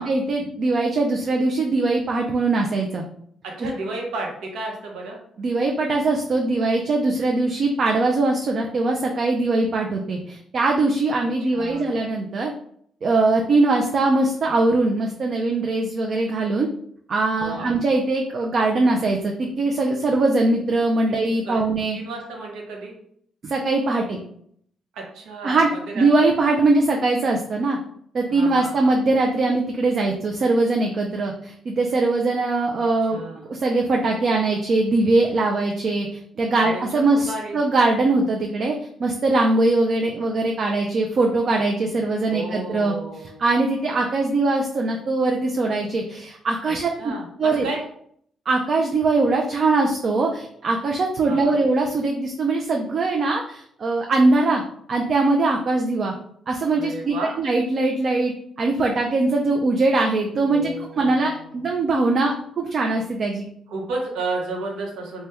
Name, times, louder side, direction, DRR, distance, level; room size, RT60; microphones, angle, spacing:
voice 1, 0.0-3.0 5.4-12.5 13.0-16.7 17.1-22.0 23.4-24.2 25.4-25.7 25.9-27.8 28.1-33.2 33.5-42.9 43.4-47.1 47.4-47.7 48.5-54.6 54.9-56.1 56.5-63.5, right 2 dB, 50° right, 1 dB, 0.4 m, -21 dB
voice 2, 3.4-5.2 11.5-11.9 17.4-17.7 21.5-21.6 21.9-22.9 24.9-25.6 25.9-26.0 28.3-28.9 33.1-33.5 36.6-36.8 37.1-37.6 42.3-43.4 46.6-47.8 51.2-51.6 56.7-57.3 60.4-61.6 63.7-65.3, right 2 dB, 85° right, 0 dB, 0.8 m, -32 dB
2.8 x 2.2 x 3.4 m, 0.66 s
cardioid pair, 90°, 0 cm